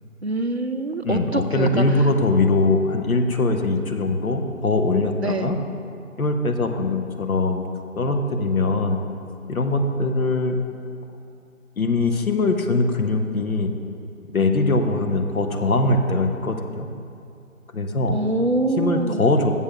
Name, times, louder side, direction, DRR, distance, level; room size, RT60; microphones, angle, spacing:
voice 1, 0.2-1.8 5.2-5.5 18.1-19.4, right 2 dB, 50° right, 6 dB, 0.5 m, -24 dB
voice 2, 1.0-5.6 6.2-7.6 8.0-9.0 9.5-10.6 11.8-13.7 14.3-16.9 17.7-18.2 18.8-19.5, left 2 dB, 70° left, 5 dB, 1.0 m, -21 dB
7.3 x 6.3 x 6.0 m, 2.5 s
figure-of-eight pair, 165°, 44 cm